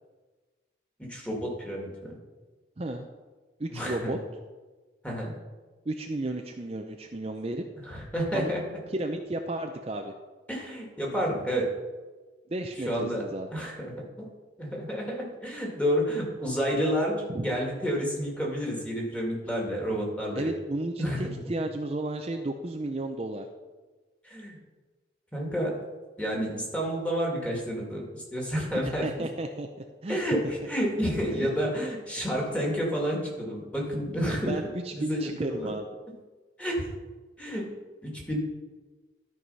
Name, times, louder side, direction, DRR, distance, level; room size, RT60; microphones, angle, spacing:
voice 1, 1.0-2.2 3.7-4.1 5.0-5.3 7.9-8.7 10.5-11.7 12.9-13.2 13.5-13.9 14.6-20.5 21.0-21.4 24.2-24.6 25.3-25.8 26.2-29.1 30.1-34.6 34.9-35.7 36.6-36.9 37.4-37.7 38.0-38.4, equal, 5° left, -2 dB, 2.0 m, -30 dB
voice 2, 2.8-3.1 3.6-4.2 5.9-7.6 8.3-8.5 8.9-10.1 12.5-13.5 17.3-17.5 20.4-23.5 29.0-29.7 30.0-30.2 31.3-31.5 34.5-35.8, right 2 dB, 35° right, 4 dB, 0.5 m, -33 dB
12.5 x 4.8 x 5.5 m, 1.3 s
head